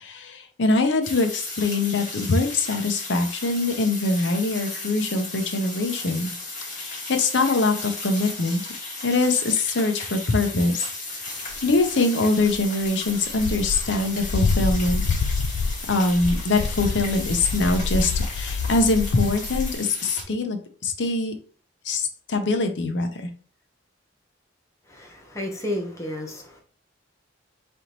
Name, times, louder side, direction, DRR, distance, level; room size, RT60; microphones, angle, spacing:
voice 1, 0.0-6.3 6.7-8.6 9.0-10.8 11.6-15.0 15.9-21.3 21.8-23.1, left 2 dB, 65° left, 5 dB, 0.7 m, -23 dB
sound 1, 1.0-20.2, left 2 dB, 40° left, 1.7 m, -35 dB
sound 2, 11.5-11.8 12.4-19.7, left 4 dB, 80° left, 0.3 m, -27 dB
voice 2, 24.9-26.6, left 1 dB, 15° left, 0 dB, 0.9 m, -32 dB
3.9 x 3.5 x 2.9 m, 0.41 s
head